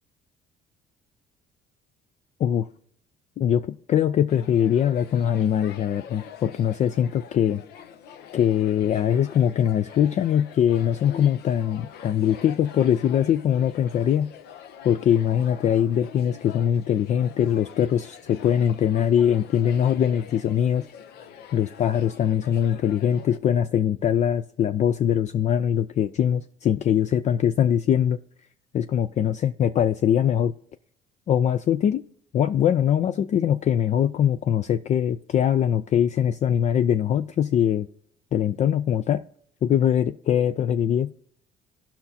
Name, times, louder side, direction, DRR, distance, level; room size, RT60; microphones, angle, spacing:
voice 1, 3.4-7.6 8.3-14.3 14.8-20.9 21.5-28.2 28.7-30.5 31.3-32.0 32.3-37.9 38.3-39.2 39.6-41.1, left 9 dB, 45° left, 0.4 m, -22 dB
sound 1, 4.3-23.4, left 8 dB, 75° left, 0.7 m, -44 dB
17.0 x 5.8 x 2.7 m
cardioid pair, 110°, 17 cm